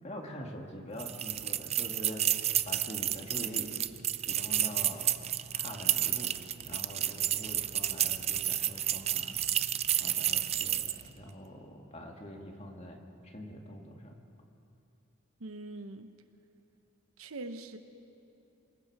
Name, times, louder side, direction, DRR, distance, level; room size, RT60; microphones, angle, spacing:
voice 1, 0.0-3.7 4.3-5.3 5.5-9.4 10.0-14.2, equal, 30° left, 1 dB, 2.0 m, -44 dB
sound 1, 1.0-11.1, right 11 dB, 30° right, 0.4 m, -31 dB
voice 2, 15.4-16.1 17.2-17.8, right 2 dB, 65° right, 9 dB, 1.0 m, -42 dB
27.0 x 20.5 x 4.8 m, 2.7 s
head